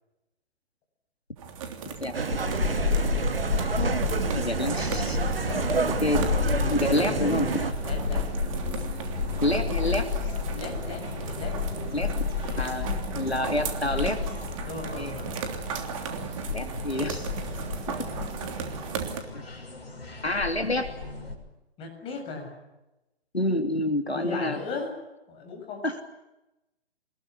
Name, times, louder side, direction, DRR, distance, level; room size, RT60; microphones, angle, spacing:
sound 1, 1.4-19.2, right 6 dB, 30° right, 3.2 m, -36 dB
sound 2, 2.1-7.7, right 4 dB, 65° right, 1.7 m, -29 dB
sound 3, 2.3-21.3, left 5 dB, 65° left, 6.4 m, -32 dB
voice 1, 2.7-3.1 5.4-5.6 6.7-8.3 10.5-11.6 14.6-15.5 21.8-22.5 24.1-24.9 25.3-25.9, left 4 dB, 15° left, 1 dB, 8.0 m, -36 dB
voice 2, 4.4-5.2 6.0-7.5 9.4-10.1 11.9-12.2 12.6-14.5 15.0-15.1 16.5-17.3 17.9-18.0 19.3-19.4 20.2-20.9 23.3-24.6 25.8-26.0, left 1 dB, 85° left, 7 dB, 3.1 m, -28 dB
26.5 x 21.0 x 9.8 m, 0.96 s
figure-of-eight pair, 130°, 31 cm